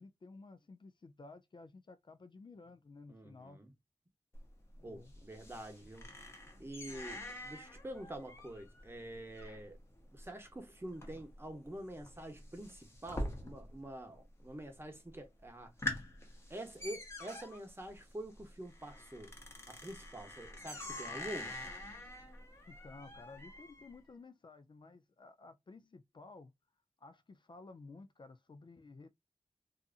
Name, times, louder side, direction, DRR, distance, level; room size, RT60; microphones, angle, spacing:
voice 1, 0.0-3.6 4.8-5.1 22.7-26.5 27.0-29.1, left 3 dB, 45° left, 0.4 m, -54 dB
voice 2, 3.1-3.7 4.8-6.3 6.6-9.8 10.1-15.8 16.5-19.3 19.7-21.6, right 1 dB, 20° right, 0.8 m, -47 dB
sound 1, 4.3-13.9 14.2-14.8 15.2-15.3 15.6-23.9, left 1 dB, 25° left, 0.9 m, -46 dB
2.7 x 2.4 x 2.4 m
wide cardioid pair, 90°, 11 cm